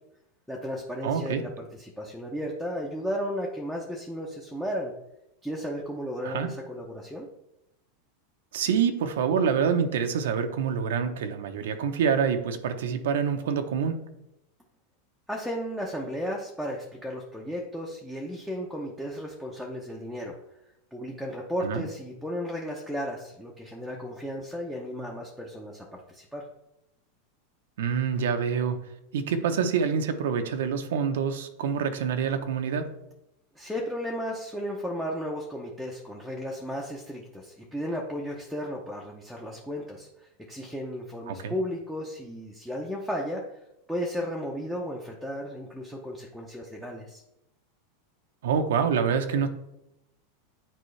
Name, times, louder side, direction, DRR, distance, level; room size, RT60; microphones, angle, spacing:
voice 1, 0.5-4.9 5.4-7.3 15.3-20.3 20.9-26.4 33.6-43.4 43.9-47.2, equal, ahead, -2 dB, 0.6 m, -34 dB
voice 2, 1.0-1.4 6.2-6.5 8.5-14.0 21.6-21.8 27.8-28.8 29.1-32.9 41.3-41.5 48.4-49.5, right 7 dB, 85° right, 6 dB, 0.8 m, -26 dB
9.1 x 4.5 x 3.2 m, 0.86 s
supercardioid pair, 165°, 0 cm